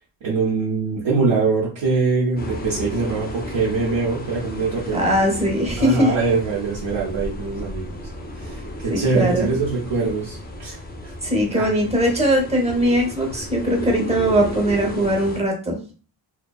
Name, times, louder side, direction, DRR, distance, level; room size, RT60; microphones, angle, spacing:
voice 1, 0.2-5.1 5.8-8.0 8.3-10.8 11.0-11.1 11.5-11.7, right 4 dB, 70° right, -5 dB, 0.8 m, -23 dB
sound 1, 2.4-15.4, left 1 dB, 20° left, 0.4 m, -34 dB
voice 2, 4.9-6.1 8.9-9.5 11.2-15.8, equal, 15° right, 0 dB, 0.6 m, -20 dB
2.6 x 2.1 x 2.2 m, 0.38 s
wide cardioid pair, 115°, 48 cm